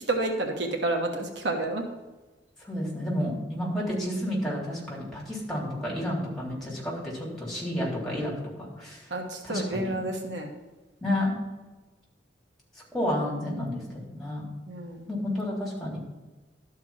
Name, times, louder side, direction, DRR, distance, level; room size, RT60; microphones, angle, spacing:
voice 1, 0.0-1.9 9.1-10.5 14.7-15.1, right 2 dB, 75° right, 2 dB, 1.4 m, -30 dB
voice 2, 2.6-9.1 9.4-9.9 11.0-11.3 12.9-14.5 15.1-16.0, left 1 dB, ahead, -5 dB, 3.5 m, -31 dB
12.5 x 4.7 x 7.2 m, 1.2 s
head